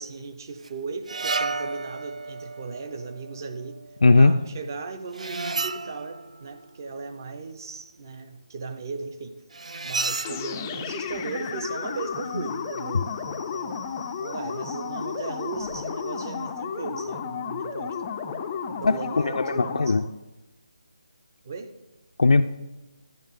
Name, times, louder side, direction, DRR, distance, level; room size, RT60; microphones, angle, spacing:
voice 1, 0.0-3.8 4.2-9.4 9.8-13.9 14.2-18.0 18.7-20.0 21.4-21.8, right 4 dB, 30° right, 10 dB, 0.6 m, -37 dB
sound 1, 0.6-0.7 1.1-4.0 5.1-6.6 9.5-10.7, right 3 dB, 80° right, 0.4 m, -32 dB
voice 2, 4.0-4.3 12.3-12.4 18.8-19.0 19.2-20.0 22.2-22.4, left 3 dB, 85° left, 5 dB, 0.4 m, -18 dB
sound 2, 10.2-20.1, left 6 dB, 15° left, 0.3 m, -33 dB
sound 3, 10.9-16.4, right 2 dB, 50° right, 3.5 m, -52 dB
12.0 x 10.0 x 3.6 m, 1.1 s
hypercardioid pair, 175°, 4 cm